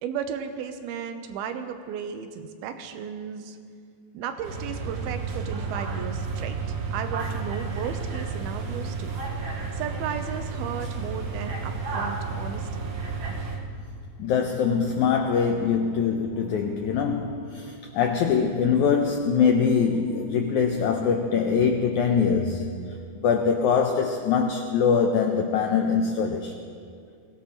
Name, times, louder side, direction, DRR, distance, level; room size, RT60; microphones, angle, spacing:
voice 1, 0.0-3.6 4.1-6.6 6.9-9.2 9.7-12.9, right 7 dB, 85° right, 8 dB, 2.7 m, -35 dB
sound 1, 4.4-13.6, right 4 dB, 60° right, 2.5 m, -31 dB
voice 2, 14.2-22.8 23.2-26.5, left 6 dB, 85° left, 4 dB, 1.7 m, -23 dB
23.0 x 17.0 x 3.0 m, 2.3 s
omnidirectional pair, 4.3 m